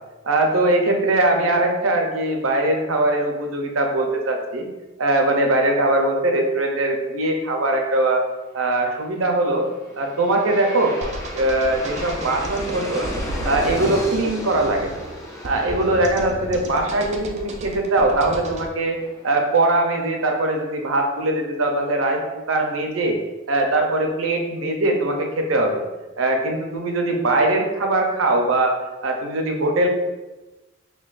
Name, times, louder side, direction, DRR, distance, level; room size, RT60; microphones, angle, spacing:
voice 1, 0.2-4.7 5.0-8.2 8.5-9.6 10.0-11.0 11.3-13.1 13.4-15.0 15.4-19.0 19.2-22.2 22.5-23.2 23.5-25.8 26.2-28.8 29.0-29.9, right 2 dB, 85° right, 2 dB, 0.6 m, -21 dB
Aircraft, 9.4-20.5, equal, 15° left, 0.7 m, -36 dB
sound 1, 11.0-18.7, right 1 dB, 35° right, 0.4 m, -33 dB
6.0 x 2.2 x 2.5 m, 1.1 s
head